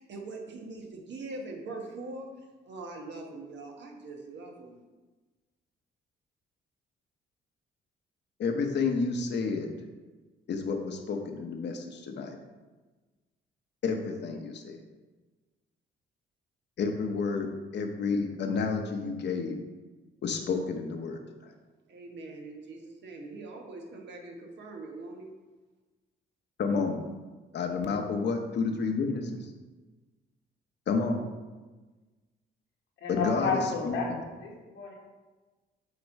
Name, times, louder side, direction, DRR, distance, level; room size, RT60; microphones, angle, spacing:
voice 1, 0.0-2.3 2.7-4.8 21.9-25.3, right 2 dB, 65° right, 1 dB, 1.2 m, -42 dB
voice 2, 8.4-9.7 10.5-12.4 13.8-14.8 16.8-17.5 17.7-19.6 20.2-21.2 26.6-27.0 27.5-29.5 30.9-31.3 33.1-34.2, left 4 dB, 60° left, 4 dB, 1.0 m, -30 dB
voice 3, 33.0-34.9, left 4 dB, 85° left, -1 dB, 1.6 m, -32 dB
8.2 x 3.0 x 5.3 m, 1.3 s
cardioid pair, 90°, 20 cm